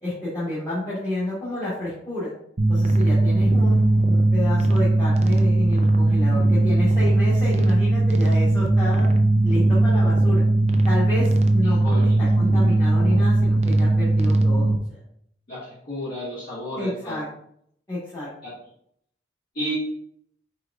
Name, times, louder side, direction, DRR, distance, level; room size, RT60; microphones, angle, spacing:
voice 1, 0.0-2.3 2.7-10.4 10.8-15.0 16.7-17.3 17.9-18.3, left 1 dB, 20° left, -11 dB, 1.5 m, -30 dB
sound 1, 2.6-14.8, right 2 dB, 40° right, 0.4 m, -19 dB
voice 2, 11.6-12.2 15.5-17.2 18.4-18.6 19.5-19.7, equal, 55° left, -11 dB, 1.7 m, -33 dB
4.8 x 4.3 x 2.4 m, 0.69 s
head